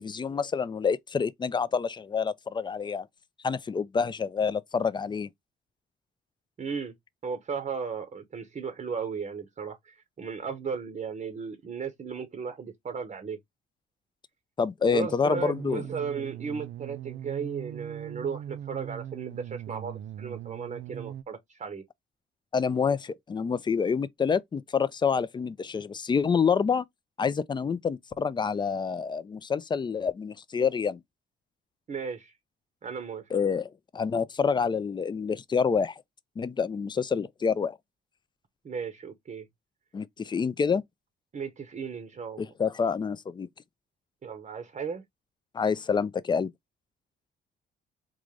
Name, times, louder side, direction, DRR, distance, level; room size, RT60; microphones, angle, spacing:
voice 1, 0.0-3.1 3.4-5.3 14.6-15.8 22.5-26.8 27.2-31.0 33.3-36.0 36.4-37.8 39.9-40.8 42.4-43.5 45.5-46.5, left 6 dB, 25° left, 0.3 m, -27 dB
voice 2, 6.6-6.9 7.2-13.4 14.9-21.8 31.9-32.3 32.8-33.2 38.6-39.4 41.3-42.5 44.2-45.0, right 6 dB, 40° right, 0.7 m, -35 dB
sound 1, 15.3-21.2, right 11 dB, 60° right, 0.4 m, -40 dB
3.7 x 2.5 x 3.1 m
cardioid pair, 90°, 20 cm